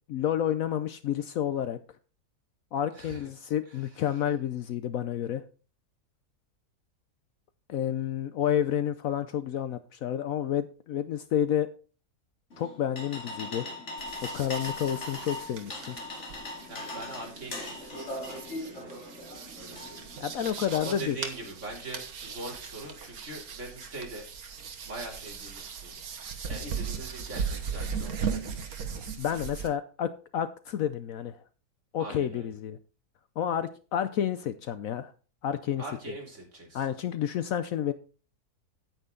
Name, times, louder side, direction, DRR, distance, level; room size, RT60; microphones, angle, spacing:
voice 1, 0.1-1.8 2.7-5.4 7.7-11.7 12.6-13.7 14.2-16.0 20.2-21.2 29.2-31.4 31.9-32.8 33.4-35.1 35.4-35.8 36.7-37.9, left 10 dB, 65° left, 12 dB, 0.9 m, -30 dB
voice 2, 2.9-3.3 3.7-4.0 16.7-19.0 19.5-20.1 20.7-24.3 24.9-28.7 32.0-32.5 35.8-36.9, right 2 dB, 45° right, -1 dB, 3.5 m, -42 dB
sound 1, 12.5-20.5, left 2 dB, 45° left, 2.8 m, -40 dB
sound 2, 14.0-29.7, right 6 dB, 65° right, 1.7 m, -38 dB
9.1 x 8.9 x 3.7 m, 0.37 s
omnidirectional pair, 1.7 m